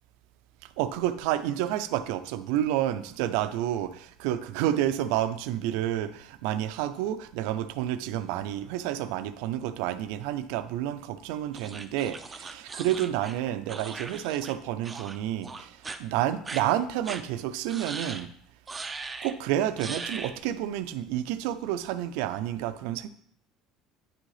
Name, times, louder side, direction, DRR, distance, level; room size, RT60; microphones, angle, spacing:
voice 1, 0.8-18.3 19.2-23.1, right 12 dB, 80° right, 12 dB, 0.5 m, -30 dB
sound 1, 11.5-14.6 14.8-15.2 15.4-16.0 16.4-16.6 17.0-17.2 17.7-18.3 18.7-19.3 19.8-20.4, right 3 dB, 20° right, 0.6 m, -39 dB
9.1 x 3.8 x 4.9 m, 0.65 s
supercardioid pair, 110°, 0 cm